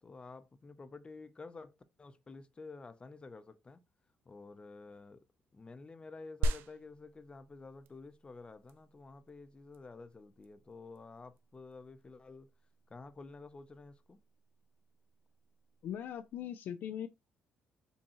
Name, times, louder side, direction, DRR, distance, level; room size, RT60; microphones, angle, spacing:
voice 1, 0.0-3.8 4.3-5.2 5.5-12.5 12.9-14.2, left 3 dB, 30° left, 0.7 m, -51 dB
sound 1, 6.4-16.4, right 2 dB, 75° right, 0.4 m, -43 dB
voice 2, 15.8-17.1, left 10 dB, 65° left, 0.4 m, -40 dB
5.3 x 2.3 x 3.0 m
supercardioid pair, 65°, 4 cm